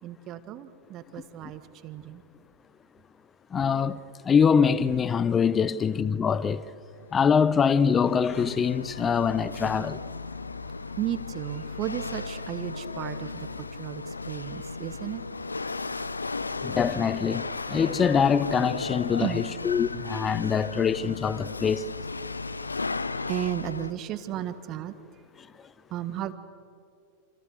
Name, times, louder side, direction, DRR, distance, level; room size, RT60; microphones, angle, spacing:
voice 1, 0.0-2.2 11.0-15.2 19.2-19.4 23.3-24.9 25.9-26.3, right 12 dB, 35° right, 1.5 m, -34 dB
voice 2, 3.5-6.7 7.1-10.0 16.6-21.8, left 6 dB, 20° left, 0.8 m, -24 dB
Chatter / Hiss / Rattle, 7.0-23.9, left 3 dB, 80° left, 0.6 m, -35 dB
28.0 x 27.5 x 6.6 m
figure-of-eight pair, 90°, 0 cm